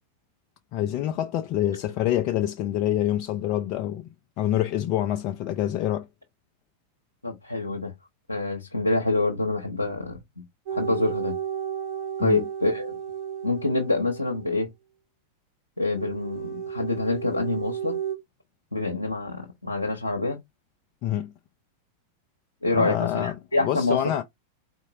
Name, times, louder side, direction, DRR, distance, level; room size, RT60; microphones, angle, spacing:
voice 1, 0.7-4.1 4.4-6.1 12.2-12.4 21.0-21.3 22.7-23.4 23.6-24.2, left 12 dB, 40° left, 0.5 m, -26 dB
voice 2, 7.2-7.9 8.3-10.2 10.7-11.4 12.2-13.0 13.4-14.7 15.8-18.0 18.7-20.4 22.6-24.0, left 2 dB, 85° left, 0.8 m, -26 dB
sound 1, 10.7-14.7 16.0-18.2, right 8 dB, 45° right, 2.0 m, -33 dB
4.2 x 3.6 x 2.7 m
figure-of-eight pair, 90°, 0 cm